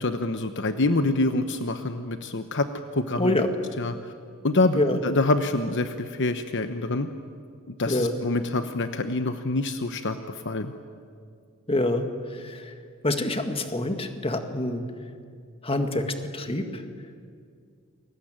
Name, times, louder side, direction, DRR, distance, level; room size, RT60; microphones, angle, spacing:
voice 1, 0.0-3.3 3.8-3.9 4.4-7.1 7.7-10.2 10.4-10.7, left 2 dB, 60° left, 8 dB, 1.1 m, -26 dB
voice 2, 3.2-3.5 4.7-5.0 7.9-8.2 11.7-12.7 13.0-14.8 15.6-16.9, left 1 dB, 25° left, 6 dB, 1.9 m, -26 dB
29.5 x 22.0 x 9.0 m, 2.2 s
head